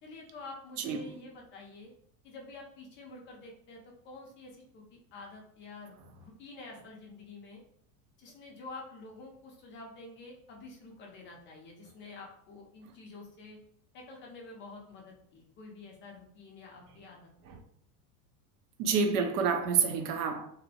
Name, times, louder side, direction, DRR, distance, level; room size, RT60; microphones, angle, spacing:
voice 1, 0.0-1.9 2.2-7.6 8.2-13.6 13.9-17.3, left 3 dB, 25° left, 0.4 m, -48 dB
voice 2, 18.8-20.5, right 6 dB, 85° right, 0.6 m, -28 dB
2.6 x 2.0 x 2.7 m
supercardioid pair, 135°, 45 cm